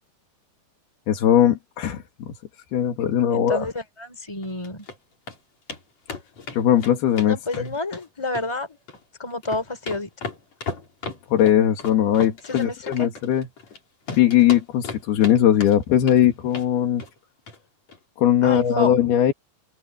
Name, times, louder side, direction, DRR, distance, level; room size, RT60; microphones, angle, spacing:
voice 1, 1.1-2.3 2.7-3.7 6.5-7.7 11.3-13.5 14.1-17.0 18.2-19.3, left 10 dB, 85° left, 4.1 m, -19 dB
voice 2, 3.3-4.9 7.3-8.7 9.2-10.1 12.5-13.1 18.4-18.9, left 2 dB, 5° left, 4.1 m, -29 dB
sound 1, 4.4-5.0 5.3-5.4 5.7-5.8 6.1-8.0 8.3-9.0 9.3-13.8 14.1-15.3 15.6-16.2 16.5-16.7 17.0-17.2 17.5-17.6 17.9-18.0, left 4 dB, 45° left, 5.6 m, -35 dB
omnidirectional pair, 4.3 m